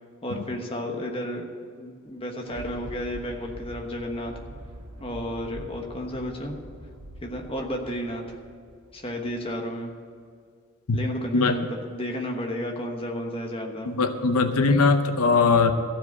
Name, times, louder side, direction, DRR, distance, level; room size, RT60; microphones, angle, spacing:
voice 1, 0.2-1.4 1.8-4.3 5.0-6.6 7.2-8.4 8.9-9.9 10.9-14.0, equal, 25° left, 2 dB, 1.2 m, -32 dB
Thunder, 2.0-9.6 10.1-10.2, right 1 dB, 85° right, 1.7 m, -44 dB
voice 2, 13.9-15.7, left 4 dB, 85° left, 8 dB, 0.7 m, -20 dB
14.5 x 4.9 x 9.4 m, 2.2 s
head